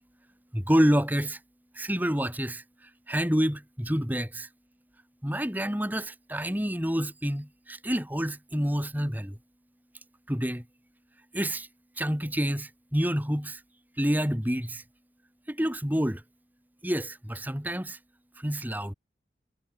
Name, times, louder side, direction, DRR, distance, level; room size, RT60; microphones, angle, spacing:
voice 1, 0.5-1.4 1.7-2.6 3.1-4.5 5.2-9.4 10.3-10.6 11.3-11.7 12.0-13.6 14.0-14.8 15.5-16.2 16.8-18.0 18.4-18.9, equal, 10° right, 4.5 m, -28 dB
head